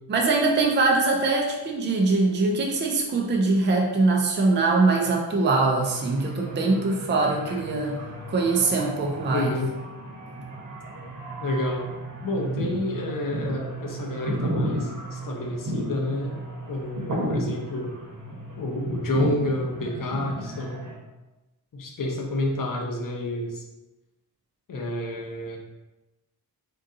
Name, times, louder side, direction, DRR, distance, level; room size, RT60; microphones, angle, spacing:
voice 1, 0.1-8.0 8.3-9.5, right 3 dB, 30° right, 0 dB, 0.5 m, -22 dB
sound 1, 5.8-21.0, right 1 dB, 50° right, 1.0 m, -33 dB
voice 2, 9.3-9.7 11.4-11.9 12.2-16.4 16.7-17.9 18.6-20.9 21.7-23.6 24.7-25.6, left 1 dB, 55° left, 0 dB, 0.8 m, -29 dB
3.8 x 3.7 x 2.7 m, 1.1 s
wide cardioid pair, 155°, 39 cm